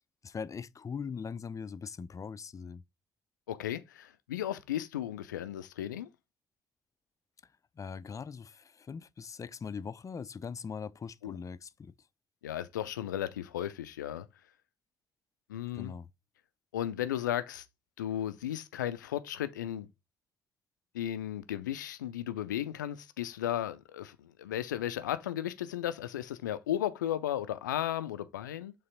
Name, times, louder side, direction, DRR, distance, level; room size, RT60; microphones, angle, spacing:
voice 1, 0.2-2.8 7.8-11.9 15.7-16.1, left 6 dB, 35° left, 0.6 m, -41 dB
voice 2, 3.5-6.1 11.2-11.4 12.4-14.3 15.5-16.0 16.7-17.7 18.0-19.9 20.9-28.7, left 11 dB, 80° left, 0.5 m, -35 dB
6.8 x 3.4 x 5.0 m
figure-of-eight pair, 45°, 10 cm